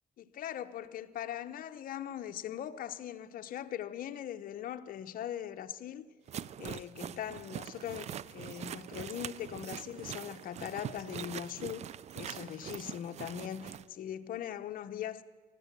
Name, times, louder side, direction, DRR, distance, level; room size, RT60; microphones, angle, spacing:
voice 1, 0.2-6.1 6.6-11.9 12.1-15.2, left 10 dB, 55° left, 0.8 m, -40 dB
sound 1, 6.3-13.8, right 9 dB, 40° right, 0.4 m, -43 dB
15.5 x 13.0 x 6.8 m
cardioid pair, 110°, 17 cm